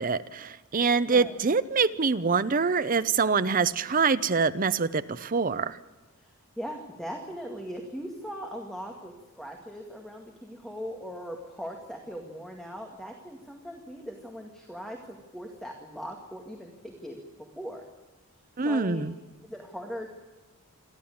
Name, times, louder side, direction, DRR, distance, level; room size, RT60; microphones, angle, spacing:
voice 1, 0.0-5.8 18.6-19.1, right 4 dB, 40° right, 14 dB, 0.6 m, -25 dB
voice 2, 1.1-1.4 6.2-17.2 17.6-17.9 18.6-19.0 19.4-20.1, equal, ahead, 1 dB, 2.0 m, -40 dB
27.5 x 12.0 x 8.7 m, 1.2 s
head